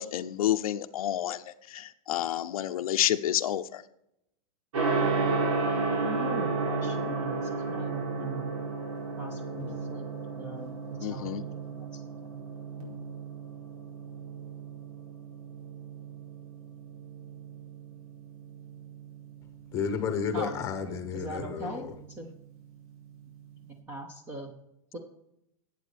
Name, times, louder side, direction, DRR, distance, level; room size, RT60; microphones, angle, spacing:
voice 1, 0.0-3.8 11.0-11.4, left 12 dB, 75° left, 0.6 m, -29 dB
Gong, 4.7-23.7, right 4 dB, 75° right, 4.6 m, -34 dB
voice 2, 6.0-8.5 9.2-10.1 10.4-10.7 11.0-11.3 11.5-12.5 20.3-20.6 21.1-22.3 23.9-24.5 24.9-25.0, right 1 dB, 10° right, 0.8 m, -41 dB
voice 3, 19.7-22.0, left 6 dB, 15° left, 1.1 m, -32 dB
12.0 x 8.4 x 5.1 m
supercardioid pair, 170°, 19 cm